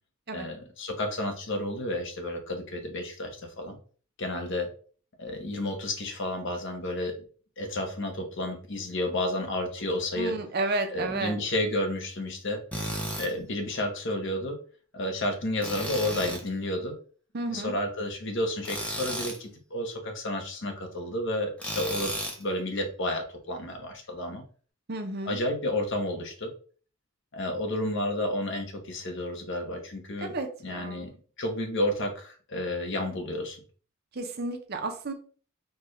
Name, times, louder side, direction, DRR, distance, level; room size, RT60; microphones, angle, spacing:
voice 1, 0.3-3.8 4.2-4.7 5.2-7.2 7.6-10.4 10.9-12.6 13.1-14.6 14.9-17.0 17.5-22.1 22.4-24.4 25.3-26.5 27.3-30.3 30.6-31.1 31.4-33.6, left 1 dB, 60° left, 5 dB, 0.8 m, -31 dB
voice 2, 10.2-11.4 17.3-17.7 24.9-25.4 30.2-31.1 34.1-35.1, right 2 dB, 50° right, 5 dB, 0.7 m, -32 dB
Tools, 12.7-13.3 15.6-16.5 18.6-19.4 21.6-22.4, equal, 5° left, 0.6 m, -33 dB
4.4 x 2.3 x 3.2 m, 0.42 s
head